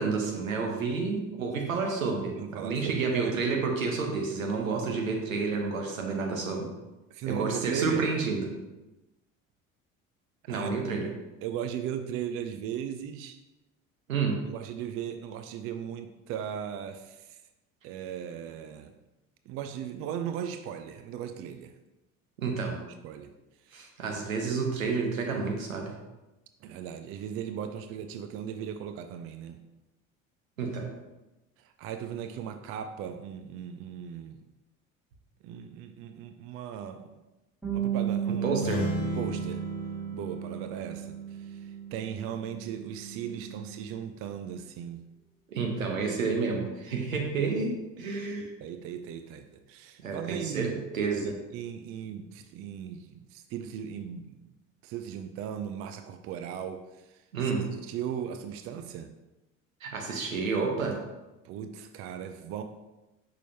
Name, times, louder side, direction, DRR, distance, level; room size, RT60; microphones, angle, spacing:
voice 1, 0.0-2.4 2.6-6.7 7.3-8.5 10.5-11.1 14.1-14.4 22.4-22.8 23.7-25.9 30.6-30.9 38.4-38.9 45.5-48.5 50.0-51.4 57.3-57.7 59.8-61.0, right 4 dB, 75° right, 2 dB, 1.1 m, -30 dB
voice 2, 2.4-3.4 7.1-8.0 10.5-10.8 11.4-13.4 14.5-17.4 17.8-18.9 19.5-21.7 23.0-23.3 23.6-23.7 26.6-29.6 31.6-34.4 35.4-37.2 37.7-38.6 39.0-39.6 40.1-45.0 48.4-50.8 51.2-54.4 54.8-59.1 61.4-62.6, right 9 dB, 35° right, 8 dB, 0.4 m, -37 dB
Bass guitar, 37.6-43.9, right 9 dB, ahead, 1.6 m, -35 dB
sound 1, 38.5-42.3, right 1 dB, 55° left, 1.2 m, -36 dB
6.1 x 5.6 x 2.8 m, 1.0 s
figure-of-eight pair, 60°, 40 cm